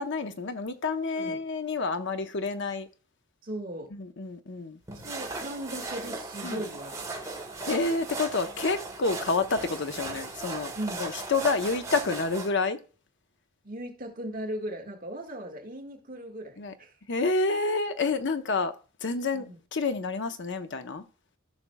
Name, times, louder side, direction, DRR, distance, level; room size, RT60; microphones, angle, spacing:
voice 1, 0.0-2.9 3.9-4.8 6.4-6.6 7.7-10.7 11.0-12.8 16.6-16.7 17.1-18.7 19.0-19.5 19.7-21.0, left 3 dB, 60° left, 0.8 m, -29 dB
voice 2, 3.4-3.9 5.0-7.0 10.8-11.0 13.6-16.9 19.3-19.6, right 1 dB, 40° right, 1.6 m, -37 dB
sound 1, 4.9-12.5, right 3 dB, 15° right, 1.7 m, -37 dB
15.0 x 6.0 x 2.2 m
head